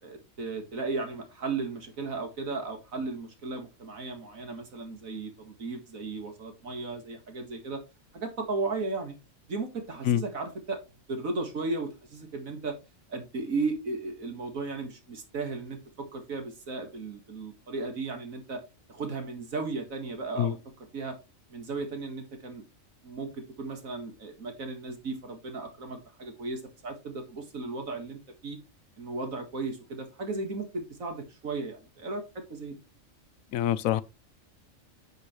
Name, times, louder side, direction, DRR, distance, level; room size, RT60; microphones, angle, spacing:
voice 1, 0.0-7.8 8.1-9.1 9.5-10.8 11.1-12.8 13.1-18.6 18.9-20.6 20.9-21.2 21.5-22.6 23.0-28.6 29.0-32.8, right 3 dB, 80° right, 2.2 m, -35 dB
voice 2, 33.5-34.0, left 11 dB, 85° left, 1.0 m, -25 dB
10.0 x 5.3 x 3.2 m
omnidirectional pair, 1.4 m